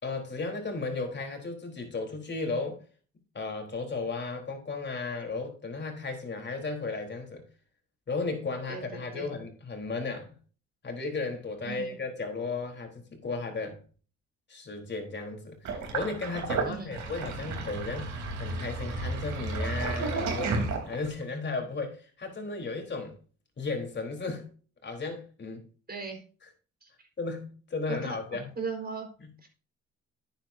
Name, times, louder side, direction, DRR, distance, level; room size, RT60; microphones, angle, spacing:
voice 1, 0.0-2.8 3.3-7.5 8.1-10.3 10.8-13.8 14.5-23.1 23.6-24.5 24.8-25.6 27.2-28.4, left 3 dB, 35° left, 3.9 m, -35 dB
voice 2, 8.7-9.3 11.6-12.0 16.6-17.0 25.9-26.2 26.8-27.1 27.9-29.1 29.4-29.5, right 4 dB, 30° right, 4.6 m, -38 dB
Sink (filling or washing), 15.6-21.2, right 3 dB, 70° right, 3.6 m, -32 dB
10.5 x 9.2 x 2.7 m
cardioid pair, 90°, 30 cm